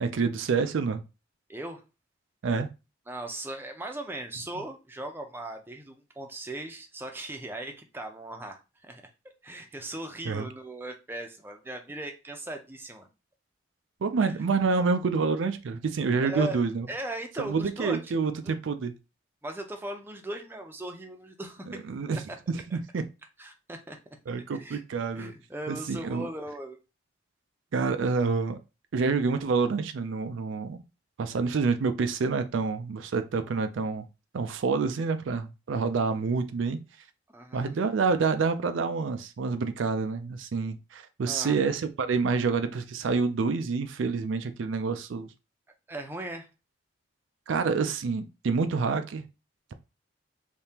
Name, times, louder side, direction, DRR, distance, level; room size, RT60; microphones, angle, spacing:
voice 1, 0.0-1.0 2.4-2.7 10.3-10.5 14.0-16.9 17.4-18.9 21.9-22.2 22.5-23.0 24.3-25.3 25.7-26.3 27.7-28.6 28.9-30.8 31.2-34.0 34.3-36.8 37.5-45.3 47.5-49.2, right 4 dB, 80° right, 0.4 m, -27 dB
voice 2, 1.5-1.8 3.1-9.0 9.4-13.1 14.2-14.3 16.2-16.6 16.9-18.0 18.4-18.5 19.4-21.8 22.1-22.4 22.7-22.8 23.4-24.2 24.6-24.8 25.2-26.8 37.3-37.7 41.3-41.6 45.9-46.5, right 1 dB, 10° right, 0.5 m, -38 dB
3.5 x 2.8 x 2.8 m
head